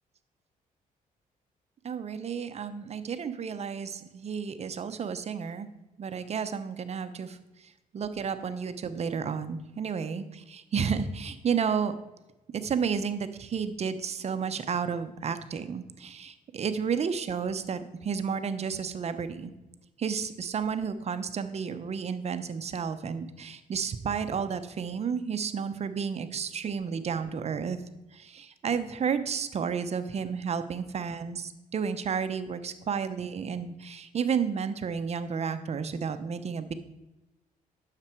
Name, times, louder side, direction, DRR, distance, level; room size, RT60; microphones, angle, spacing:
voice 1, 1.8-5.7 6.0-7.4 7.9-11.9 12.5-19.5 20.0-27.8 28.1-36.7, right 6 dB, 45° right, 11 dB, 0.8 m, -32 dB
9.6 x 6.8 x 4.5 m, 1.0 s
cardioid pair, 90°, 15 cm